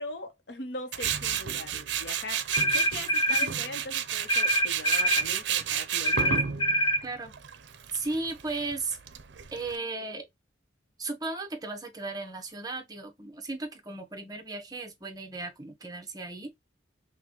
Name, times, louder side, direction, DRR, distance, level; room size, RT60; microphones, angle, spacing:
voice 1, 0.0-2.4 2.7-6.4, left 2 dB, 65° left, 0.8 m, -40 dB
Tools, 0.9-9.8, right 9 dB, 70° right, 0.5 m, -32 dB
sound 1, 2.5-3.5 4.3-5.3 6.0-7.0, equal, 25° left, 0.3 m, -25 dB
voice 2, 7.0-7.3 7.9-9.0 9.5-10.3 11.0-16.5, right 3 dB, 20° right, 0.8 m, -35 dB
5.7 x 2.2 x 2.8 m
head